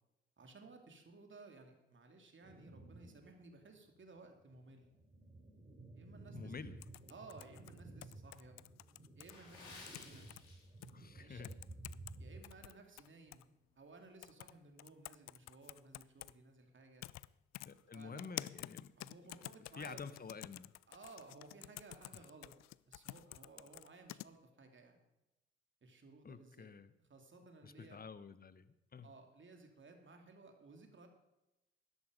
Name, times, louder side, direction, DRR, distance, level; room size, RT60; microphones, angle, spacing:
voice 1, 0.4-4.9 5.9-6.5 7.1-8.6 9.1-10.3 11.2-11.4 12.2-13.5 13.7-17.0 17.9-18.3 19.0-20.0 20.9-22.5 22.9-25.0 25.8-26.7 27.1-28.0 29.0-31.1, right 3 dB, 40° right, 4 dB, 2.9 m, -58 dB
sound 1, 2.4-3.3 3.7-3.8 4.5-12.4, right 2 dB, 25° right, 4.9 m, -54 dB
voice 2, 6.3-6.9 10.9-11.6 17.6-18.9 19.8-20.7 22.1-22.2 26.2-26.9 27.6-29.1, left 5 dB, 30° left, 15 dB, 1.0 m, -50 dB
sound 2, 6.8-9.3 9.7-10.4 10.8-10.9 11.4-12.1 12.4-13.4 14.2-14.5 14.8-16.3 17.0-17.3 17.5-24.3, left 18 dB, 65° left, 0.4 m, -49 dB
Water / Splash splatter, 9.2-11.1 11.4-11.6 12.2-12.4 12.9-13.0, left 3 dB, 85° left, 3.5 m, -56 dB
12.5 x 11.0 x 5.3 m, 0.93 s
hypercardioid pair, 45°, 29 cm